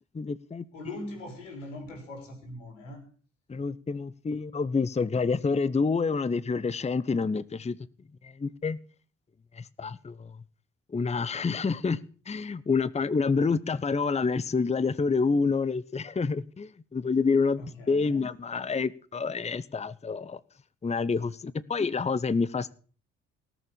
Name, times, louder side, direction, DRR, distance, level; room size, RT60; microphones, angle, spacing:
voice 1, 0.1-0.7 3.5-7.8 8.2-8.8 9.5-10.4 10.9-12.0 12.3-17.6 17.9-20.4 20.8-22.7, left 4 dB, 20° left, 0.9 m, -28 dB
voice 2, 0.7-3.1 17.6-18.3, left 2 dB, 85° left, 4.1 m, -41 dB
18.5 x 7.2 x 8.7 m
hypercardioid pair, 50°, 36 cm